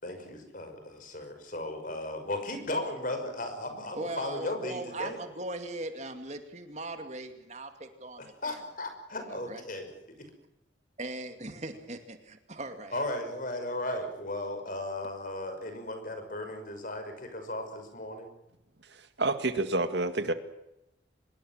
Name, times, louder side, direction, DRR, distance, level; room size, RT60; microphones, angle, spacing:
voice 1, 0.0-5.2 8.2-9.9 10.2-10.3 12.9-18.3, left 1 dB, 45° left, 7 dB, 5.9 m, -36 dB
voice 2, 3.9-8.6 9.3-9.6 11.0-13.0, right 2 dB, 35° right, 7 dB, 2.4 m, -39 dB
voice 3, 18.9-20.3, right 2 dB, 65° right, 9 dB, 1.9 m, -29 dB
25.0 x 21.5 x 7.5 m, 0.88 s
head